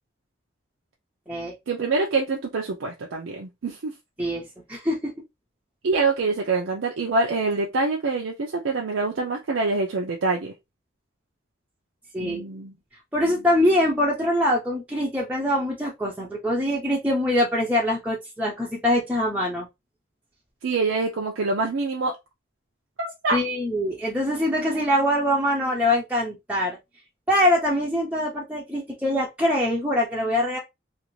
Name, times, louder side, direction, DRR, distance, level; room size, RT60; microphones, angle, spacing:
voice 1, 1.7-3.9 5.8-10.5 12.2-12.7 13.2-13.3 20.6-22.2 23.0-23.4, right 3 dB, 85° right, 0.5 m, -25 dB
voice 2, 4.7-5.1 12.1-12.5 13.1-19.7 23.3-26.8 27.3-30.6, left 1 dB, 5° right, 0.5 m, -23 dB
2.5 x 2.5 x 3.0 m
head